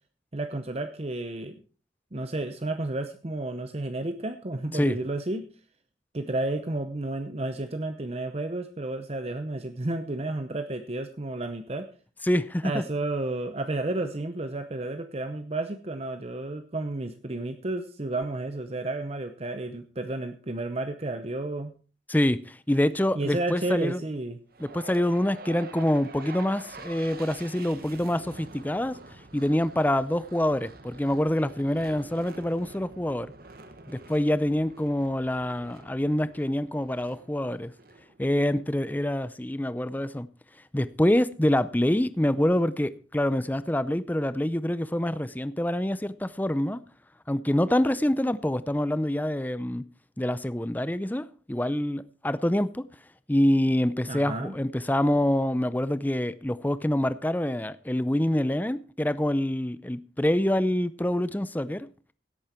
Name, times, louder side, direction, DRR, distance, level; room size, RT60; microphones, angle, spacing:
voice 1, 0.3-1.6 2.1-5.5 6.1-11.9 12.6-21.7 23.1-24.4 54.1-54.6, right 2 dB, 35° right, 0.8 m, -32 dB
voice 2, 12.2-12.8 22.1-24.0 24.6-29.0 29.3-33.3 33.9-37.7 38.2-40.3 40.7-46.8 47.3-49.8 50.2-52.8 53.3-61.9, left 1 dB, 10° left, 0.5 m, -26 dB
sound 1, 24.5-38.7, right 3 dB, 55° right, 1.2 m, -47 dB
16.5 x 8.7 x 4.4 m
head